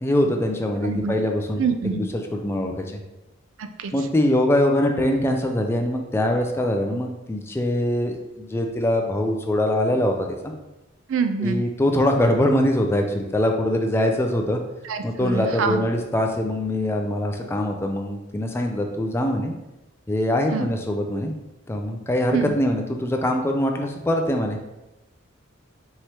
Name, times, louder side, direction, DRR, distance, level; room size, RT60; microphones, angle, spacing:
voice 1, 0.0-3.0 3.9-10.5 11.4-14.6 15.0-19.5 20.1-21.3 21.7-24.6, left 1 dB, 10° left, 3 dB, 0.3 m, -23 dB
voice 2, 0.8-1.1 1.6-2.0 3.6-3.9 11.1-11.6 14.8-15.8 20.5-20.7 22.3-22.6, right 5 dB, 70° right, 7 dB, 0.4 m, -25 dB
4.7 x 3.0 x 2.8 m, 1.0 s
head